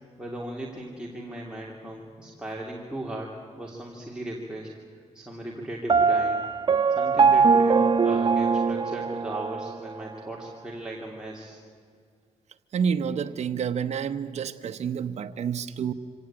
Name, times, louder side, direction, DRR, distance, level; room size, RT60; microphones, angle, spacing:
voice 1, 0.2-4.7 5.1-6.5 6.9-11.6, right 1 dB, 5° right, -3 dB, 2.8 m, -37 dB
Piano, 5.9-9.8, right 5 dB, 40° right, 0.7 m, -21 dB
voice 2, 12.7-15.9, right 7 dB, 65° right, 6 dB, 0.9 m, -29 dB
25.5 x 17.5 x 8.8 m, 2.1 s
wide cardioid pair, 115°, 12 cm